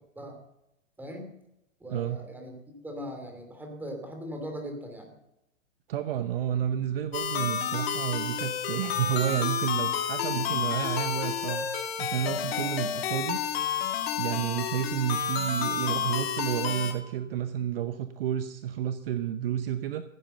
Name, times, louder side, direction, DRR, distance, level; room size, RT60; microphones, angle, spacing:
voice 1, 1.0-1.3 1.8-5.1 12.5-12.7, equal, 5° right, 3 dB, 2.6 m, -40 dB
voice 2, 1.9-2.2 5.9-13.4 14.2-20.0, right 10 dB, 45° right, 10 dB, 0.9 m, -30 dB
sound 1, 7.1-16.9, left 8 dB, 50° left, 2.1 m, -30 dB
15.5 x 9.0 x 6.7 m, 0.86 s
hypercardioid pair, 140°, 40 cm